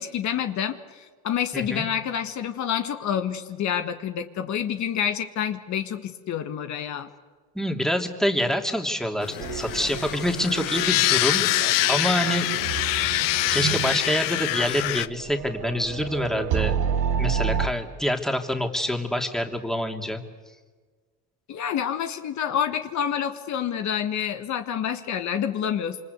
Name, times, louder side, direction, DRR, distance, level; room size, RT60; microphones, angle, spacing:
voice 1, 0.0-7.1 21.5-26.0, left 9 dB, 55° left, 8 dB, 1.7 m, -28 dB
voice 2, 1.5-1.9 7.5-12.5 13.5-16.8 17.2-20.2, equal, ahead, 4 dB, 2.7 m, -26 dB
sound 1, 9.2-15.1, left 17 dB, 75° left, 0.9 m, -25 dB
sound 2, 9.4-17.7, right 8 dB, 65° right, 1.6 m, -30 dB
27.0 x 25.0 x 8.3 m, 1.4 s
supercardioid pair, 100°, 34 cm